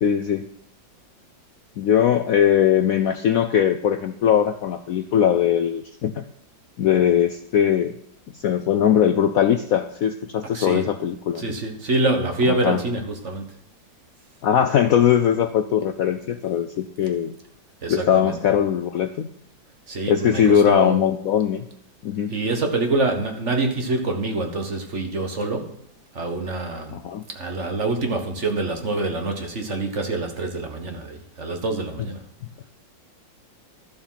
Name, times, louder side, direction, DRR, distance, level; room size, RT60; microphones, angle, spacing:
voice 1, 0.0-0.5 1.8-6.2 6.8-7.9 8.3-11.4 12.5-12.8 14.4-17.3 17.9-19.3 20.1-21.6 22.0-22.3 26.9-27.2, left 9 dB, 70° left, 9 dB, 0.8 m, -20 dB
voice 2, 10.5-10.9 11.3-13.6 17.8-18.4 19.9-21.0 22.3-25.8 26.1-27.0 27.3-32.2, right 2 dB, 40° right, 4 dB, 1.5 m, -26 dB
12.5 x 7.1 x 5.7 m, 0.70 s
omnidirectional pair, 2.0 m